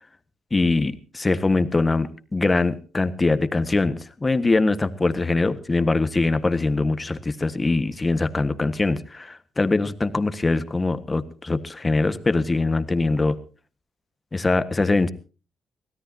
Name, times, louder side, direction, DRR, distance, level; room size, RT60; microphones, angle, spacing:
voice 1, 0.5-13.3 14.3-15.1, left 3 dB, 20° left, 12 dB, 1.5 m, -22 dB
24.5 x 17.0 x 2.8 m, 0.35 s
cardioid pair, 90°, 0 cm